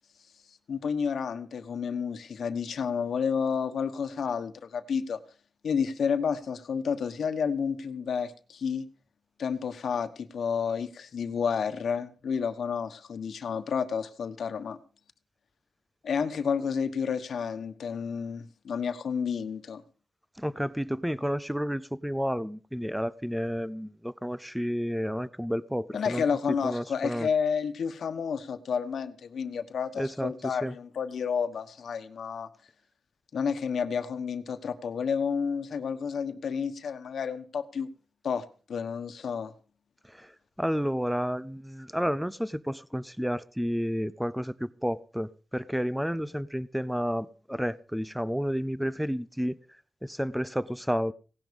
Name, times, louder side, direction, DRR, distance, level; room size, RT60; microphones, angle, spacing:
voice 1, 0.7-5.2 5.6-8.9 9.4-14.8 16.0-19.8 25.9-32.5 33.3-37.9 38.2-39.5, left 6 dB, 80° left, 10 dB, 1.3 m, -30 dB
voice 2, 20.4-26.2 26.6-27.3 30.0-30.7 40.1-40.3 40.6-49.6 50.0-51.1, equal, ahead, 18 dB, 0.6 m, -31 dB
17.5 x 11.0 x 5.3 m, 0.38 s
wide cardioid pair, 135°, 0 cm